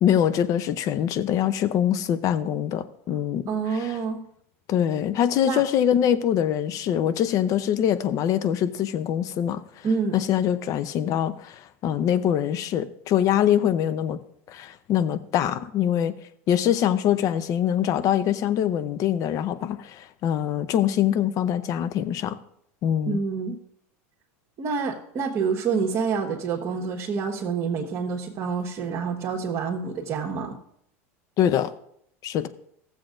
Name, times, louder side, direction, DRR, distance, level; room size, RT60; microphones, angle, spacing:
voice 1, 0.0-4.0 4.7-9.6 10.1-14.2 14.5-16.1 16.5-22.4 22.8-23.2 31.4-31.7 32.2-32.5, left 10 dB, 45° left, 0.7 m, -24 dB
voice 2, 3.5-4.2 5.4-5.6 9.8-10.2 23.1-23.6 24.6-30.6, right 5 dB, 40° right, 1.3 m, -27 dB
15.0 x 7.4 x 2.6 m
hypercardioid pair, 100°, 8 cm